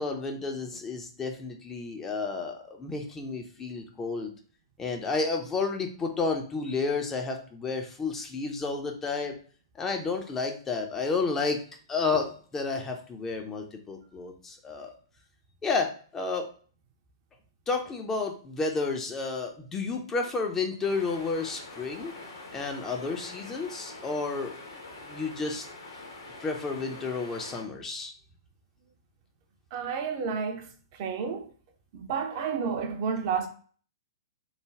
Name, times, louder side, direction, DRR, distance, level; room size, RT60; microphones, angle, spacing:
voice 1, 0.0-4.3 4.8-9.3 9.8-11.6 11.9-14.9 15.6-16.5 17.7-22.2 22.5-24.5 25.1-25.6 26.4-28.1, left 4 dB, 15° left, 0.5 m, -31 dB
sound 1, 20.8-27.6, left 2 dB, 65° left, 0.9 m, -45 dB
voice 2, 29.7-30.7 31.0-31.5 31.9-33.5, right 6 dB, 40° right, 0.5 m, -30 dB
3.2 x 2.1 x 3.4 m
figure-of-eight pair, 110°, 2 cm